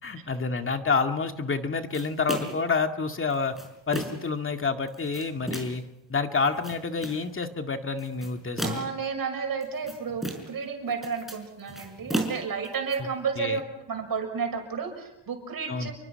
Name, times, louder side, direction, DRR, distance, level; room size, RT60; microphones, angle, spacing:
voice 1, 0.0-3.6 3.9-5.8 6.1-8.8 13.0-13.1 13.4-13.6 15.7-15.9, left 4 dB, 30° left, 5 dB, 2.1 m, -28 dB
sound 1, 1.9-2.7 3.3-4.3 4.9-5.9 6.4-7.3 8.0-9.0 9.6-10.6 10.9-13.0, right 1 dB, ahead, 5.3 m, -34 dB
voice 2, 8.6-13.6 13.9-15.9, right 5 dB, 50° right, 4 dB, 6.6 m, -32 dB
29.5 x 24.0 x 5.8 m, 0.88 s
cardioid pair, 135°, 43 cm